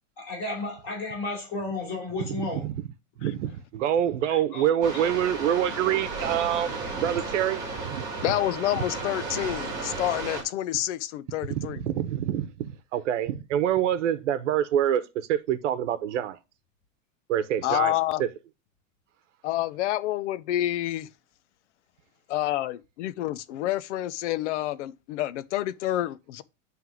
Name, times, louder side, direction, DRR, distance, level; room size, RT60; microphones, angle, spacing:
voice 1, 0.2-2.7 4.3-5.6, left 3 dB, 30° left, 4.1 m, -34 dB
voice 2, 2.5-2.8 3.2-8.0 11.5-16.4 17.3-17.9 18.2-18.3, right 10 dB, 65° right, 0.9 m, -26 dB
sound 1, 4.8-10.4, right 3 dB, 10° right, 1.5 m, -34 dB
voice 3, 8.2-11.8 17.6-18.2 19.4-21.1 22.3-26.4, left 14 dB, 65° left, 0.6 m, -28 dB
9.3 x 3.4 x 4.8 m
supercardioid pair, 175°, 39 cm